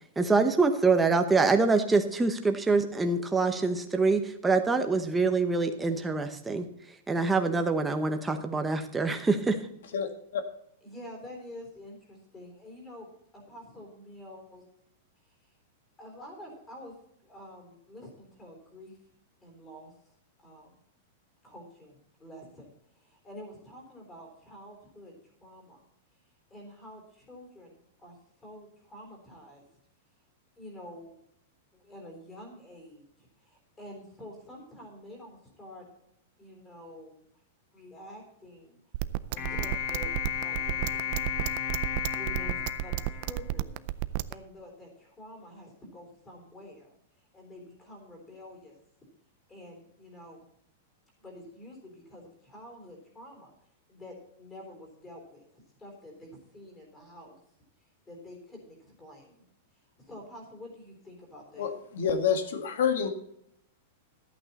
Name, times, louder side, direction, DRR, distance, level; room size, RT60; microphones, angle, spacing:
voice 1, 0.2-6.7 7.1-9.6, right 3 dB, 5° right, 6 dB, 0.9 m, -25 dB
voice 2, 9.9-10.4 61.6-63.1, left 7 dB, 70° left, 8 dB, 1.8 m, -28 dB
voice 3, 10.8-13.1 13.3-14.6 16.0-16.9 17.2-18.9 19.4-19.9 20.4-20.8 21.4-22.7 23.0-25.1 25.4-25.9 26.5-29.7 30.6-31.1 31.7-35.9 36.4-37.2 37.7-38.8 39.3-40.1 40.4-41.4 42.2-43.7 44.3-46.9 47.3-48.8 49.5-50.5 51.2-53.5 53.9-55.5 55.8-57.4 58.1-59.4 60.0-61.7, left 1 dB, 10° left, 1 dB, 3.6 m, -48 dB
sound 1, 38.9-44.3, right 17 dB, 40° right, 0.4 m, -31 dB
sound 2, 39.4-43.9, left 8 dB, 35° left, 1.3 m, -34 dB
13.5 x 8.8 x 4.1 m, 0.74 s
supercardioid pair, 170°, 0 cm